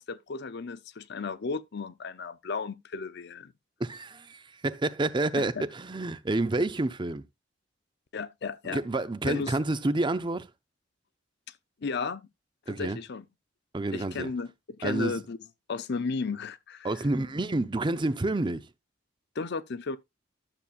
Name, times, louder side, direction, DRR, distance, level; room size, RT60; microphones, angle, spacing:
voice 1, 0.0-3.5 5.4-5.6 8.1-8.8 9.2-9.6 11.8-12.2 12.7-13.3 13.9-14.5 14.8-15.4 15.7-16.9 19.4-20.0, left 4 dB, 55° left, 0.6 m, -34 dB
voice 2, 3.8-7.2 8.6-10.5 12.7-13.0 13.7-14.3 14.8-15.2 16.8-18.7, right 2 dB, 25° right, 0.5 m, -29 dB
12.0 x 7.1 x 2.4 m
head